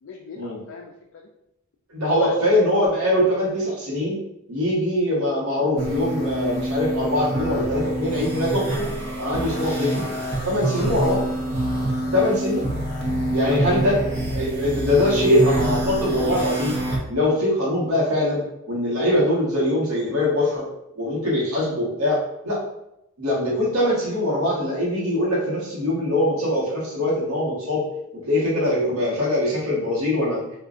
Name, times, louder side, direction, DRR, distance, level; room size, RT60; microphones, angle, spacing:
voice 1, 0.0-1.3 2.0-2.4 12.0-12.2 13.3-13.6, left 4 dB, 65° left, 1 dB, 0.3 m, -35 dB
voice 2, 1.9-4.2 4.5-8.8 9.2-10.0 10.4-11.2 12.1-12.7 13.3-14.0 14.3-16.7 17.1-20.7 20.9-22.6 23.2-27.8 28.2-30.4, left 1 dB, 85° right, -6 dB, 1.2 m, -22 dB
sound 1, 5.8-17.0, right 1 dB, 55° right, 0.8 m, -26 dB
3.7 x 2.4 x 2.4 m, 0.84 s
head